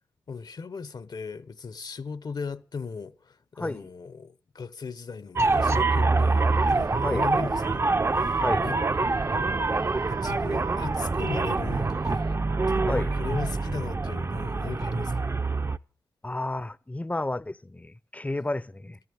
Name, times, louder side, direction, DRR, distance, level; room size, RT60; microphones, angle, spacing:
voice 1, 0.3-9.2 10.1-12.4 12.7-15.3, left 5 dB, 55° left, 0.9 m, -37 dB
voice 2, 3.6-3.9 7.0-7.3 8.4-8.7 12.9-13.1 16.2-19.0, left 2 dB, 15° left, 0.6 m, -31 dB
sound 1, 5.4-15.8, right 3 dB, 35° right, 0.6 m, -25 dB
sound 2, 6.2-12.4, right 7 dB, 85° right, 2.3 m, -52 dB
13.5 x 9.7 x 7.8 m
supercardioid pair, 40°, 8 cm